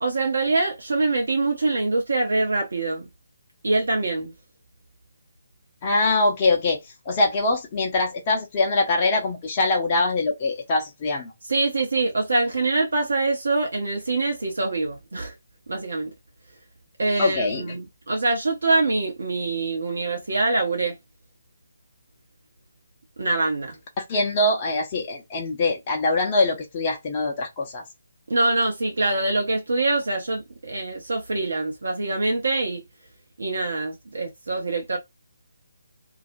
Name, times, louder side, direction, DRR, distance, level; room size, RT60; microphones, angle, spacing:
voice 1, 0.0-3.1 3.6-4.3 11.4-15.3 15.7-16.1 17.0-21.0 23.2-23.8 28.3-32.8 33.4-35.0, right 2 dB, 60° right, 0.6 m, -24 dB
voice 2, 5.8-6.8 7.1-11.3 17.2-17.6 24.0-27.8, left 2 dB, 30° left, 0.6 m, -23 dB
2.3 x 2.1 x 2.5 m
figure-of-eight pair, 145°, 0 cm